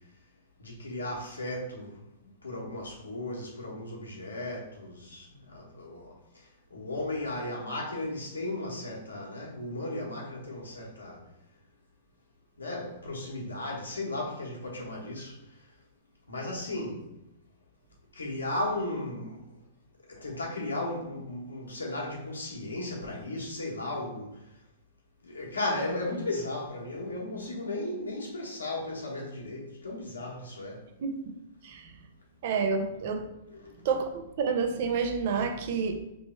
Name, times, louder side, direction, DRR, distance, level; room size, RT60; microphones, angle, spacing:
voice 1, 0.6-2.0 2.4-6.4 6.7-11.2 12.6-15.4 16.3-17.0 18.1-19.4 20.1-24.4 25.2-30.8 33.5-33.7, left 2 dB, 90° left, -2 dB, 1.3 m, -35 dB
voice 2, 31.0-31.3 31.6-31.9 32.4-33.2 33.8-34.1 34.4-36.1, right 5 dB, 55° right, 5 dB, 0.6 m, -29 dB
3.3 x 3.0 x 4.4 m, 0.90 s
hypercardioid pair, 110°, 0 cm